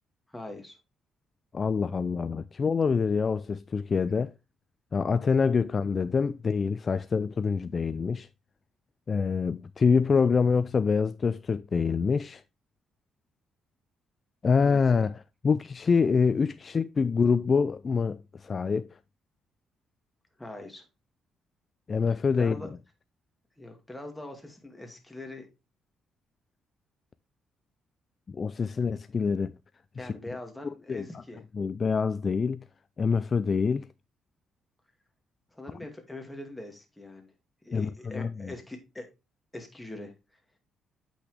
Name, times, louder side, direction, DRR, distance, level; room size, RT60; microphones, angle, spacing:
voice 1, 0.3-0.8 14.6-14.8 20.4-20.9 22.3-22.7 23.6-25.5 30.0-31.4 35.5-37.3 37.6-39.1 39.5-40.1, left 2 dB, 10° left, 2.3 m, -42 dB
voice 2, 1.5-4.3 4.9-8.3 9.1-12.4 14.4-18.9 21.9-22.8 28.3-29.5 30.0-30.2 30.9-32.6 33.0-33.9 37.7-38.6, left 5 dB, 40° left, 0.4 m, -26 dB
8.2 x 6.1 x 3.4 m
cardioid pair, 90°, 0 cm